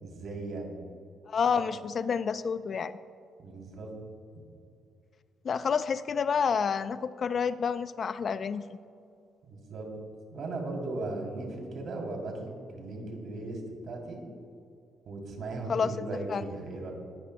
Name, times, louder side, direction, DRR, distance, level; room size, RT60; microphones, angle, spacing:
voice 1, 0.0-0.7 1.5-1.6 3.4-3.9 9.4-9.9 10.3-14.2 15.0-16.9, right 2 dB, 65° right, 1 dB, 3.0 m, -37 dB
voice 2, 1.3-3.0 5.4-8.6 15.7-15.9 16.3-16.4, left 6 dB, 50° left, 14 dB, 0.4 m, -29 dB
20.5 x 11.0 x 2.2 m, 2.5 s
cardioid pair, 90°, 0 cm